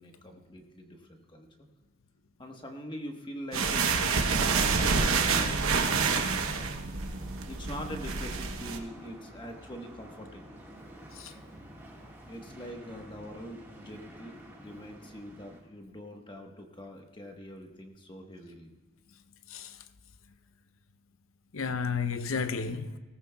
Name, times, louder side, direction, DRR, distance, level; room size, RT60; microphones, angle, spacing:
voice 1, 0.0-1.5 2.4-5.6 7.4-10.5 12.3-18.7, equal, 20° left, 1.2 m, -44 dB
sound 1, 3.5-8.8, right 5 dB, 80° right, 1.0 m, -27 dB
sound 2, 7.0-15.6, right 1 dB, 10° right, 1.6 m, -50 dB
voice 2, 19.5-19.8 21.5-23.0, left 5 dB, 75° left, 0.7 m, -32 dB
18.5 x 14.0 x 2.3 m
head